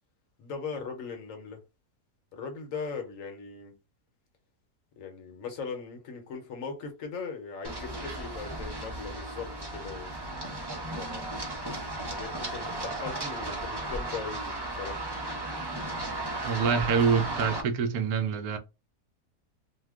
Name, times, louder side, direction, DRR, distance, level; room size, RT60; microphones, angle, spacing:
voice 1, 0.4-1.6 2.3-3.8 5.0-10.1 11.0-11.3 12.1-15.0, left 5 dB, 60° left, 1.1 m, -39 dB
Run, 7.6-17.6, right 2 dB, 40° right, 0.3 m, -35 dB
voice 2, 16.4-18.6, right 6 dB, 75° right, 1.0 m, -26 dB
2.7 x 2.2 x 3.4 m
omnidirectional pair, 1.7 m